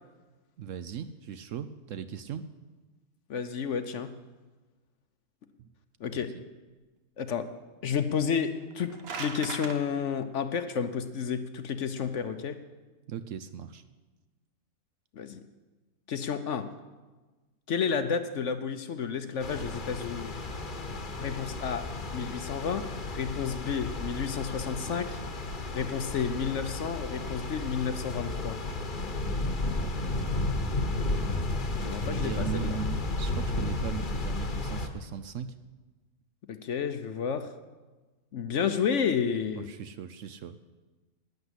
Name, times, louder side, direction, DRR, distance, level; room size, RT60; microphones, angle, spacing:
voice 1, 0.6-2.5 5.6-5.7 6.1-6.2 13.1-13.8 29.8-30.3 32.0-35.5 39.6-40.6, right 8 dB, 65° right, 12 dB, 0.9 m, -38 dB
voice 2, 3.3-4.1 6.0-6.3 7.2-7.5 7.8-12.5 15.1-15.4 16.1-16.7 17.7-20.3 21.2-21.8 22.1-25.2 25.7-28.6 31.8-32.7 36.5-37.5 38.3-39.7, left 7 dB, 60° left, 10 dB, 0.9 m, -31 dB
sound 1, 8.6-9.8, right 5 dB, 45° right, 1.1 m, -38 dB
sound 2, 19.4-34.9, left 2 dB, 35° left, 1.2 m, -33 dB
12.0 x 10.0 x 8.0 m, 1.2 s
omnidirectional pair, 1.6 m